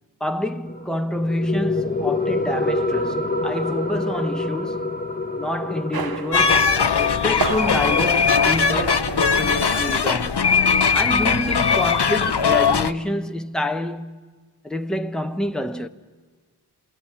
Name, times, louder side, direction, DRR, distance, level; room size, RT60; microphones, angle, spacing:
voice 1, 0.2-5.0 5.4-10.4 10.9-14.2 14.6-15.9, left 1 dB, ahead, 1.1 m, -27 dB
sound 1, 0.7-11.7, left 2 dB, 20° left, 1.2 m, -28 dB
sound 2, 5.9-10.2 10.5-10.7 10.9-12.9, right 5 dB, 60° right, 0.8 m, -32 dB
sound 3, 6.3-12.9, left 5 dB, 75° left, 0.8 m, -19 dB
28.0 x 19.5 x 8.7 m
wide cardioid pair, 45°, 41 cm